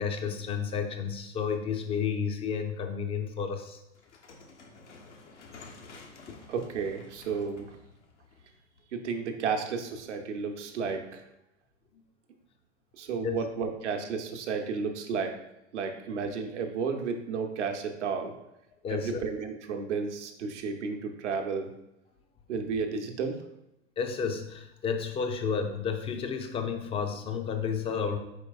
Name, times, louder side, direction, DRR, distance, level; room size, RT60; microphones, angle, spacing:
voice 1, 0.0-3.8 6.3-6.4 13.2-13.4 18.8-19.2 24.0-28.2, left 6 dB, 15° left, 6 dB, 0.3 m, -31 dB
sound 1, 3.9-9.1, left 4 dB, 80° left, 0.8 m, -51 dB
voice 2, 6.5-7.8 8.9-11.3 12.9-15.3 15.7-18.3 18.9-21.7 22.5-23.4, right 5 dB, 75° right, 5 dB, 0.8 m, -32 dB
4.5 x 4.5 x 2.3 m, 0.86 s
hypercardioid pair, 95°, 35 cm